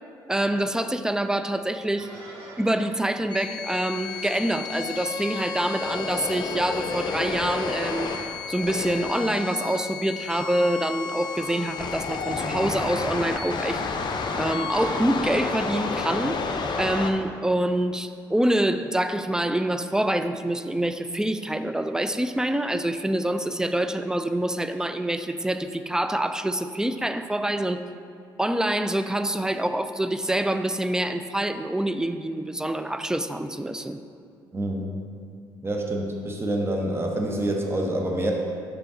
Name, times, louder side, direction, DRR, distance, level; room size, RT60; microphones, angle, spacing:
voice 1, 0.3-2.1 2.6-8.2 8.5-13.8 14.3-16.4 16.8-27.9 28.4-34.0, right 1 dB, 5° right, 10 dB, 0.3 m, -26 dB
sound 1, 2.0-8.9, right 1 dB, 50° right, 1.5 m, -45 dB
sound 2, 3.3-17.1, left 4 dB, 40° left, 0.6 m, -31 dB
voice 2, 34.5-34.9 35.6-38.3, right 1 dB, 20° right, 1 dB, 0.9 m, -27 dB
5.7 x 4.9 x 3.8 m, 2.3 s
hypercardioid pair, 50°, 11 cm